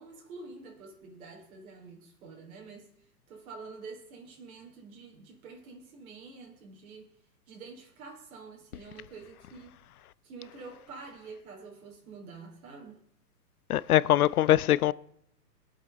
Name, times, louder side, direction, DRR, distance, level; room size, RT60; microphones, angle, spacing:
voice 1, 0.0-2.9 3.3-7.1 7.5-9.8 10.2-13.0, right 4 dB, 55° right, 5.1 m, -47 dB
voice 2, 13.7-14.9, left 13 dB, 60° left, 0.6 m, -22 dB
21.5 x 8.3 x 4.2 m
hypercardioid pair, 125°, 50 cm